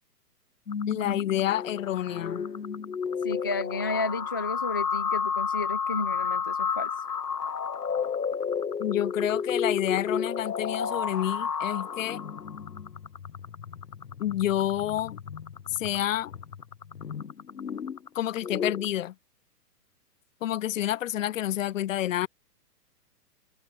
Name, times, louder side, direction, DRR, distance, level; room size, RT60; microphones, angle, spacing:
sound 1, 0.7-18.9, left 6 dB, 85° left, 1.3 m, -32 dB
voice 1, 0.9-2.5 8.8-12.2 14.2-15.2 15.7-16.3 18.1-19.1 20.4-22.3, left 12 dB, 55° left, 0.8 m, -29 dB
voice 2, 3.2-6.9, left 3 dB, 15° left, 0.3 m, -32 dB
figure-of-eight pair, 120°, 47 cm